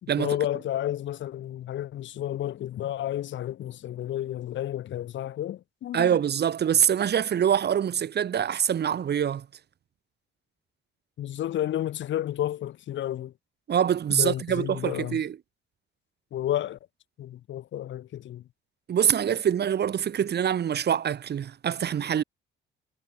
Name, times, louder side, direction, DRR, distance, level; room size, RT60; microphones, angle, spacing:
voice 1, 0.0-6.1 11.2-13.3 14.2-15.2 16.3-16.8 17.2-18.4, left 12 dB, 70° left, 1.4 m, -31 dB
voice 2, 5.9-9.5 13.7-15.4 18.9-22.2, right 9 dB, 55° right, 2.4 m, -25 dB
cardioid pair, 90°, 20 cm